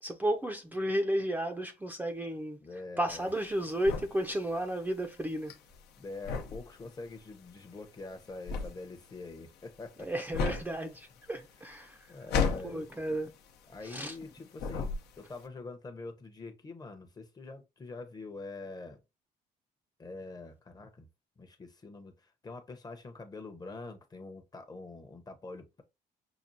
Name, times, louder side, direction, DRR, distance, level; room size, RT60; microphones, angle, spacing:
voice 1, 0.0-2.6 3.0-5.5 10.0-12.1 12.6-13.3 13.8-14.2, right 1 dB, 10° right, 0.5 m, -33 dB
voice 2, 2.6-3.3 6.0-10.2 12.1-12.9 13.7-19.0 20.0-21.1 21.4-25.8, left 3 dB, 25° left, 0.8 m, -45 dB
sound 1, 3.1-14.3 14.6-15.4, left 5 dB, 75° left, 0.8 m, -35 dB
5.9 x 2.3 x 2.7 m
cardioid pair, 110°, 17 cm